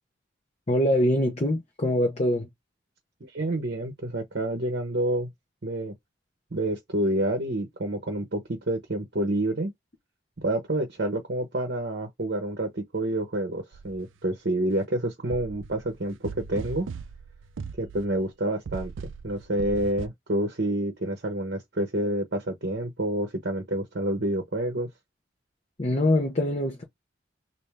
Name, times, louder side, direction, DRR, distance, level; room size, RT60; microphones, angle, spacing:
voice 1, 0.7-2.5 25.8-26.8, left 1 dB, 35° left, 0.7 m, -24 dB
voice 2, 3.2-5.3 5.6-5.9 6.5-9.7 10.4-16.9 17.8-18.9 19.2-24.9, right 1 dB, 55° right, 0.8 m, -28 dB
sound 1, 13.7-14.1 15.3-18.3 18.6-20.1, right 5 dB, 85° right, 0.4 m, -39 dB
3.4 x 2.6 x 3.3 m
head